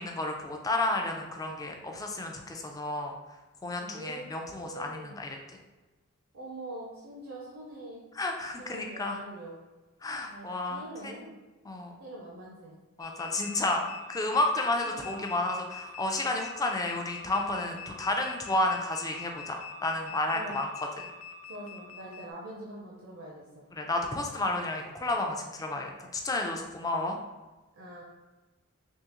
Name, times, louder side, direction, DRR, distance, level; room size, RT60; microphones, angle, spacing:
voice 1, 0.0-3.1 3.6-5.4 8.2-9.2 10.0-11.1 11.7-12.0 13.0-20.7 23.7-27.2, left 2 dB, 15° left, 2 dB, 0.4 m, -31 dB
voice 2, 3.8-5.2 6.3-8.1 8.6-9.5 10.3-11.4 12.0-12.7 14.8-15.3 20.3-20.6 21.5-23.6 27.7-28.0, right 1 dB, 70° right, -4 dB, 0.6 m, -44 dB
sound 1, 13.0-22.3, left 6 dB, 85° left, 0.4 m, -44 dB
3.6 x 2.7 x 2.9 m, 1.2 s
head